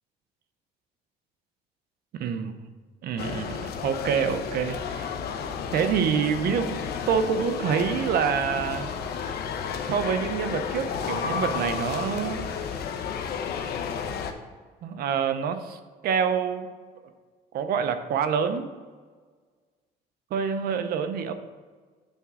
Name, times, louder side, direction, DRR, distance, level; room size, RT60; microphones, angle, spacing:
voice 1, 2.1-2.5 3.0-5.1 5.7-8.9 9.9-12.4 14.8-16.7 17.5-18.7 20.3-21.3, right 7 dB, 65° right, 9 dB, 0.8 m, -27 dB
sound 1, 3.2-14.3, left 6 dB, 70° left, 0.9 m, -32 dB
9.0 x 3.7 x 6.1 m, 1.5 s
cardioid pair, 110°, 17 cm